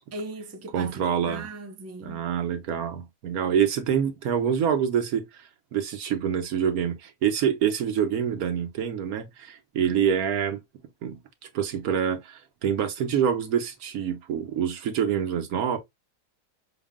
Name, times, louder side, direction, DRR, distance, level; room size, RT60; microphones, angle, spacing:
voice 1, 0.1-2.2, right 2 dB, 20° right, 0.4 m, -39 dB
voice 2, 0.7-1.5 2.0-5.3 5.7-10.6 11.0-11.2 11.5-15.8, right 8 dB, 90° right, 1.4 m, -26 dB
6.2 x 2.1 x 3.6 m
omnidirectional pair, 1.5 m